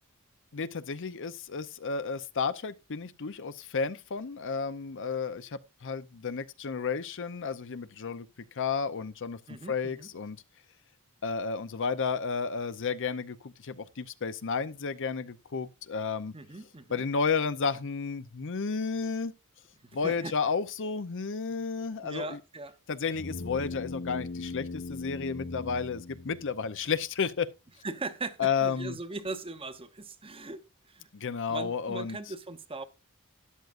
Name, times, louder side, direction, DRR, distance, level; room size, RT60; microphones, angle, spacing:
voice 1, 0.5-8.3 8.6-9.4 9.7-10.4 11.2-16.3 16.9-19.3 19.9-22.4 22.9-27.5 28.4-29.0 31.1-32.2, left 5 dB, 60° left, 0.7 m, -32 dB
voice 2, 9.5-10.1 16.3-17.0 19.8-20.3 22.0-22.8 27.8-31.1 31.5-32.8, right 3 dB, 25° right, 0.9 m, -39 dB
sound 1, 23.1-26.8, left 3 dB, 80° left, 1.6 m, -39 dB
13.0 x 10.5 x 2.6 m
head